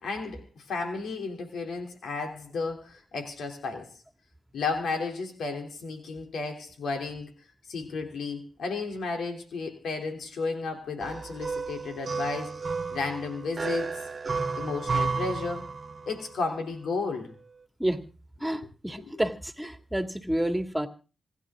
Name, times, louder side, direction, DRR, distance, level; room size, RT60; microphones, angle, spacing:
voice 1, 0.0-3.9 4.5-7.3 7.7-12.6 12.9-13.9 14.5-15.7 16.1-17.3 19.0-19.1, left 4 dB, 80° left, 4 dB, 3.3 m, -33 dB
sound 1, 11.0-16.2, right 4 dB, 45° right, 1.4 m, -32 dB
voice 2, 18.4-20.9, right 1 dB, 10° right, 6 dB, 2.4 m, -29 dB
26.5 x 11.0 x 3.8 m, 0.36 s
supercardioid pair, 50°, 0 cm